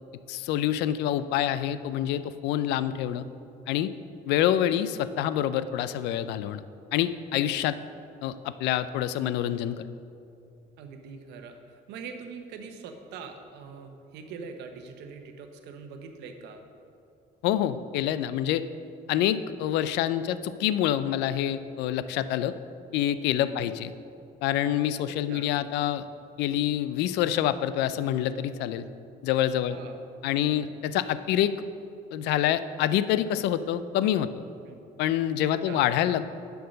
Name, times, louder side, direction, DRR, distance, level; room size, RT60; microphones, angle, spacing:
voice 1, 0.3-3.2 3.7-3.9 4.3-6.6 6.9-7.8 8.2-9.8 17.4-18.6 19.1-22.5 22.9-23.9 24.4-26.1 26.4-28.8 29.2-29.8 30.2-31.5 32.1-34.3 35.0-36.2, left 11 dB, 85° left, 14 dB, 0.4 m, -26 dB
voice 2, 10.8-11.6 11.9-16.6 23.4-23.7 25.1-25.5 29.7-30.0 30.5-30.7 34.7-34.8 35.5-35.8, right 5 dB, 90° right, 5 dB, 0.9 m, -43 dB
10.5 x 4.7 x 6.3 m, 2.6 s
cardioid pair, 110°, 17 cm